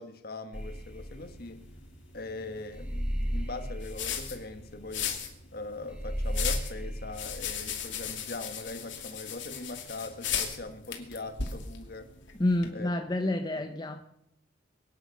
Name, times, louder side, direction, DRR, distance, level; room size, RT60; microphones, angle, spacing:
voice 1, 0.0-1.7 2.1-5.2 5.5-12.1 12.7-12.9 13.2-13.6, left 2 dB, 50° left, 8 dB, 1.5 m, -41 dB
sound 1, 0.5-12.7, left 7 dB, 75° left, 2.6 m, -38 dB
sound 2, 0.5-8.1, equal, 5° right, 2.2 m, -35 dB
voice 2, 12.3-14.0, left 1 dB, 20° left, 6 dB, 0.8 m, -29 dB
23.0 x 9.8 x 6.5 m, 0.81 s
head